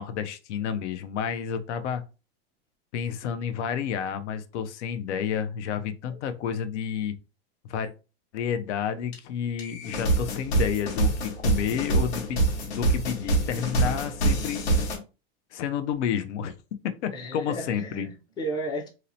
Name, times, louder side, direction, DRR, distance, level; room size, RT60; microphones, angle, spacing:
voice 1, 0.0-2.0 2.9-7.1 7.7-7.9 8.3-14.6 15.5-16.6 17.0-18.1, left 8 dB, 85° left, 0.5 m, -30 dB
sound 1, 9.1-9.2 9.6-15.0, right 2 dB, 65° left, 1.2 m, -25 dB
voice 2, 17.1-18.9, right 1 dB, 15° left, 0.4 m, -34 dB
2.8 x 2.0 x 2.5 m
supercardioid pair, 140°, 34 cm